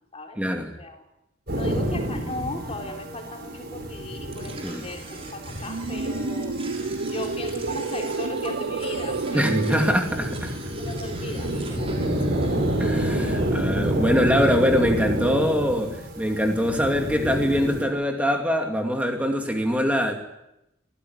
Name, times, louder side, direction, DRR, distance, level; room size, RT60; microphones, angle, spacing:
voice 1, 0.4-0.7 4.6-4.9 9.3-10.5 12.8-20.1, equal, 5° right, 3 dB, 2.5 m, -23 dB
voice 2, 1.5-6.6 7.1-9.9 10.8-12.1, left 2 dB, 30° left, 3 dB, 3.7 m, -37 dB
sound 1, 1.5-17.8, right 1 dB, 55° right, 6.0 m, -29 dB
sound 2, 4.3-13.5, right 3 dB, 30° right, 5.7 m, -44 dB
sound 3, 5.6-10.0, right 3 dB, 75° right, 0.9 m, -29 dB
26.0 x 16.0 x 9.6 m, 0.89 s
head